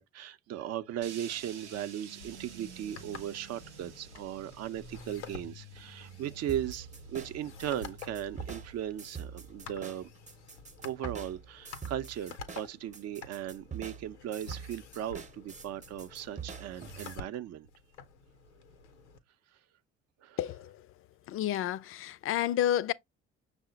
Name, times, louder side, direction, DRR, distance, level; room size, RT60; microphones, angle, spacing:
voice 1, 0.0-10.1 10.8-17.7 20.2-20.4, right 11 dB, 50° right, 0.6 m, -37 dB
sound 1, 1.0-11.2, right 4 dB, 90° right, 0.6 m, -51 dB
sound 2, 2.2-19.2, left 4 dB, 85° left, 0.6 m, -50 dB
sound 3, 6.5-17.2, right 6 dB, 20° right, 0.8 m, -45 dB
voice 2, 20.4-20.8 21.3-22.9, left 11 dB, 40° left, 0.4 m, -30 dB
6.0 x 2.1 x 3.8 m
hypercardioid pair, 55°, 33 cm